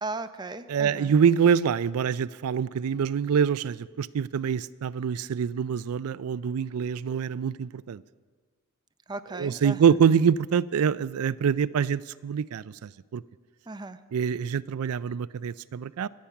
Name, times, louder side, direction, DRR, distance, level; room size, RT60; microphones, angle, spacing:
voice 1, 0.0-1.1 9.1-9.8 13.7-14.0, right 3 dB, 20° right, 10 dB, 0.5 m, -36 dB
voice 2, 0.7-8.0 9.3-13.2 14.1-16.1, right 7 dB, 85° right, 16 dB, 0.4 m, -25 dB
25.0 x 8.5 x 5.8 m, 1.5 s
head